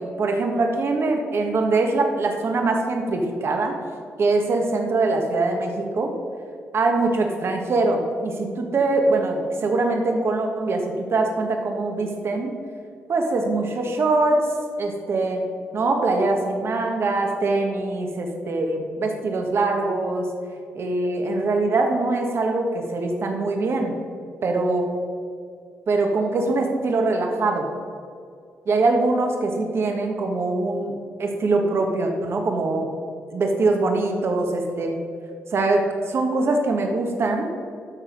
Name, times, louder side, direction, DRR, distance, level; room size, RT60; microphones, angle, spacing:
voice 1, 0.0-3.8 4.2-6.1 6.7-12.5 13.1-14.5 14.8-20.3 20.7-24.0 24.4-25.0 25.9-27.7 28.7-32.9 33.3-35.0 35.5-37.5, right 2 dB, 60° right, 3 dB, 1.4 m, -23 dB
12.5 x 4.3 x 5.2 m, 2.3 s
supercardioid pair, 60°, 5 cm